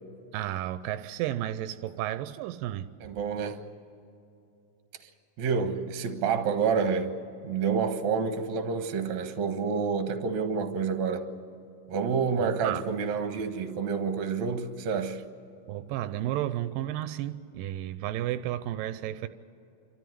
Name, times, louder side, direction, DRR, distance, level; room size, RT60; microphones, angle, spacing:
voice 1, 0.3-2.9 5.6-5.7 12.4-12.8 15.7-19.3, right 13 dB, 85° right, 2.3 m, -32 dB
voice 2, 3.0-3.6 5.4-7.2 7.4-11.2 11.9-15.2, right 5 dB, 65° right, 2.4 m, -28 dB
28.0 x 13.0 x 9.3 m
omnidirectional pair, 3.9 m